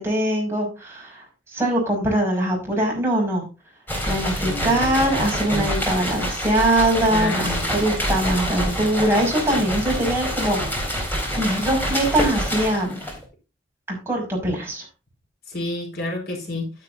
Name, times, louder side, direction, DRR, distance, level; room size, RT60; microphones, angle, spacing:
voice 1, 0.0-3.5 4.0-10.6 11.4-13.0 13.9-14.8, right 1 dB, 15° right, 5.7 m, -22 dB
sound 1, 3.9-13.2, equal, 10° left, 3.9 m, -26 dB
voice 2, 4.4-4.8 5.5-6.0 7.1-7.6 15.5-16.7, left 2 dB, 60° left, 4.7 m, -29 dB
11.5 x 10.5 x 2.7 m
head